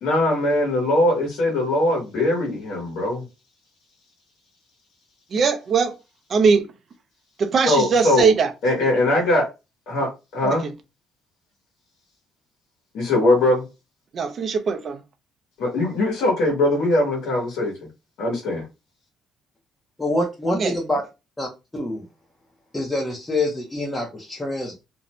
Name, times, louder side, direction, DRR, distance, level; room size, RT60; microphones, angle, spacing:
voice 1, 0.0-3.2 7.6-8.3 8.6-9.4 9.9-10.7 12.9-13.6 15.6-17.7 18.2-18.6, left 1 dB, 75° left, 1.1 m, -21 dB
voice 2, 5.3-5.9 6.3-6.7 7.4-8.5 8.8-8.9 10.4-10.6 14.1-15.0 20.6-20.7, right 5 dB, 40° right, 0.5 m, -20 dB
voice 3, 20.0-21.0 21.4-22.1 22.7-24.8, left 1 dB, 10° left, 0.6 m, -26 dB
2.6 x 2.1 x 2.9 m
cardioid pair, 135°, 0 cm